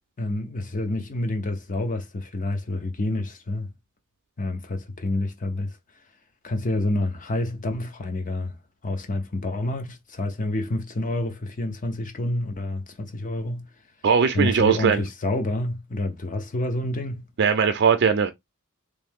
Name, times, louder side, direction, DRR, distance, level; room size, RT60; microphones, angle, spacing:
voice 1, 0.2-3.7 4.4-5.8 6.4-8.6 8.8-13.7 14.3-17.3, left 1 dB, 35° left, 0.6 m, -28 dB
voice 2, 14.0-15.0 17.4-18.3, right 6 dB, 50° right, 0.4 m, -20 dB
3.2 x 2.6 x 3.4 m
head